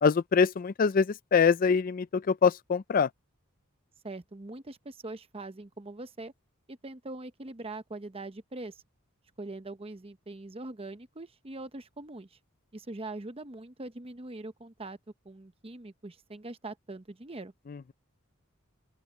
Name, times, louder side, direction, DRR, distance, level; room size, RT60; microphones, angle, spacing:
voice 1, 0.0-3.1 17.7-17.9, left 5 dB, 40° left, 0.4 m, -24 dB
voice 2, 4.0-6.3 6.7-8.8 9.4-12.4 12.7-15.0 15.2-17.5, right 2 dB, 30° right, 0.9 m, -42 dB
open air
head